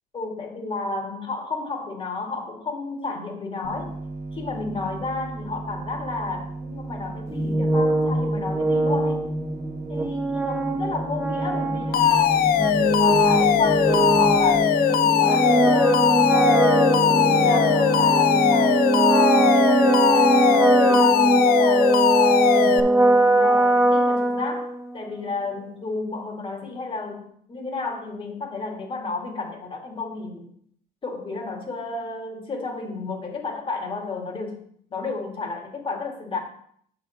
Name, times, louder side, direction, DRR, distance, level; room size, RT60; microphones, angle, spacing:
voice 1, 0.1-4.0 4.3-9.2 9.9-12.6 13.0-16.1 16.4-22.9 23.3-24.7 24.9-30.5 31.0-34.6 34.9-36.4, left 3 dB, 30° left, 1 dB, 2.0 m, -32 dB
sound 1, 3.6-14.6, right 2 dB, 45° right, 1.3 m, -36 dB
sound 2, 7.3-24.9, right 2 dB, 15° right, 0.9 m, -21 dB
Alarm, 11.9-22.8, left 10 dB, 60° left, 0.5 m, -20 dB
7.1 x 4.6 x 5.7 m, 0.64 s
cardioid pair, 110°, 17 cm